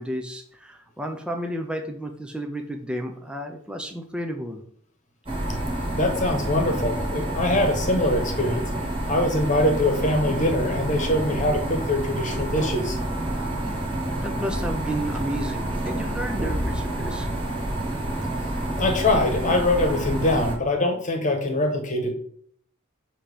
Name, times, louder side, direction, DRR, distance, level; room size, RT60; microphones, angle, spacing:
voice 1, 0.0-4.6 14.1-17.3, equal, 5° right, 3 dB, 0.6 m, -32 dB
sound 1, 5.3-20.6, right 1 dB, 25° right, 1.5 m, -28 dB
voice 2, 5.9-8.6 9.1-13.0 18.8-22.1, left 1 dB, 35° left, 4 dB, 1.2 m, -23 dB
7.2 x 2.9 x 4.9 m, 0.62 s
head